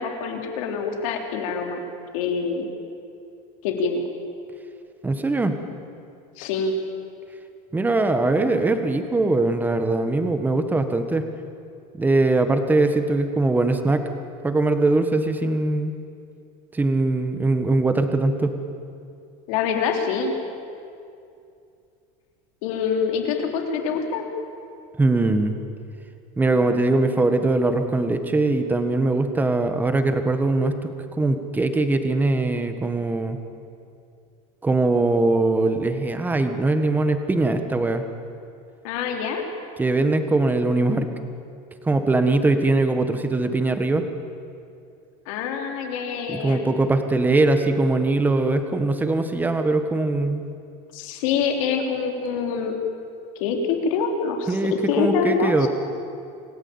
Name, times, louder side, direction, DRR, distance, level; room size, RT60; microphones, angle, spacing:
voice 1, 0.0-1.8 2.1-2.7 3.6-4.0 6.4-6.7 19.5-20.3 22.6-24.2 38.8-39.4 45.3-46.7 50.9-52.7 53.4-55.7, left 5 dB, 75° left, 3 dB, 3.9 m, -25 dB
voice 2, 5.0-5.6 7.7-11.2 12.0-14.0 14.4-15.9 16.7-18.6 25.0-25.5 26.4-33.4 34.6-38.0 39.8-41.1 41.8-44.0 46.3-50.4 54.5-55.7, right 2 dB, 10° right, 7 dB, 1.6 m, -21 dB
28.0 x 18.0 x 8.8 m, 2.5 s
cardioid pair, 155°, 17 cm